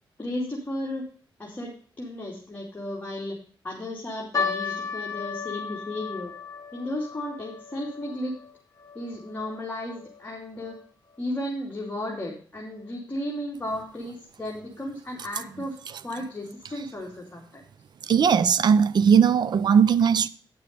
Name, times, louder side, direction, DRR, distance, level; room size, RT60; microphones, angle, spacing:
voice 1, 0.2-1.1 1.4-3.4 3.6-6.3 6.7-8.4 8.9-10.8 11.2-17.6, left 1 dB, 20° left, 2.9 m, -34 dB
sound 1, 4.3-10.8 11.1-11.2 12.0-12.2 12.8-12.9 13.3-13.5, left 5 dB, 40° left, 4.5 m, -35 dB
voice 2, 18.0-20.3, right 7 dB, 60° right, 0.6 m, -19 dB
10.0 x 6.8 x 5.3 m
wide cardioid pair, 110°, 8 cm